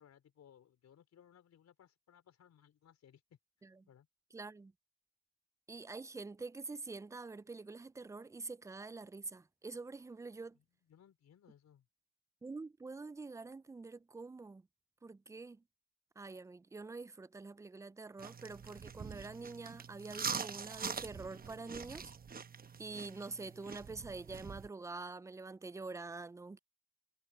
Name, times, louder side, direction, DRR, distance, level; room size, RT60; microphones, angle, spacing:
voice 1, 0.0-3.2 3.9-4.1 10.5-11.9, left 9 dB, 65° left, 4.9 m, -63 dB
voice 2, 4.3-4.7 5.7-10.6 12.4-14.6 15.0-15.6 16.2-22.1 22.8-26.6, right 3 dB, 10° right, 0.3 m, -46 dB
sound 1, 18.2-24.7, right 6 dB, 30° right, 1.0 m, -44 dB
cardioid pair, 90°, 30 cm